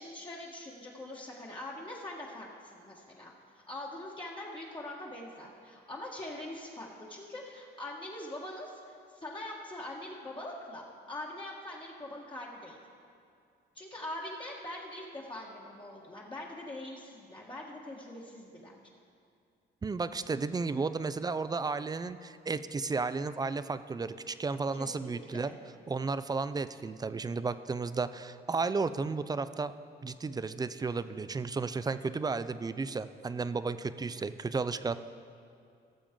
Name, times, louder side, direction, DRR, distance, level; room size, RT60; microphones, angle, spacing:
voice 1, 0.0-3.3 3.7-12.8 13.7-18.7 24.7-25.6, left 1 dB, 25° left, -4 dB, 1.4 m, -43 dB
voice 2, 19.8-25.6 25.9-29.7 30.0-35.0, right 4 dB, 20° right, 13 dB, 0.4 m, -33 dB
17.5 x 7.1 x 3.7 m, 2.4 s
cardioid pair, 90°, 20 cm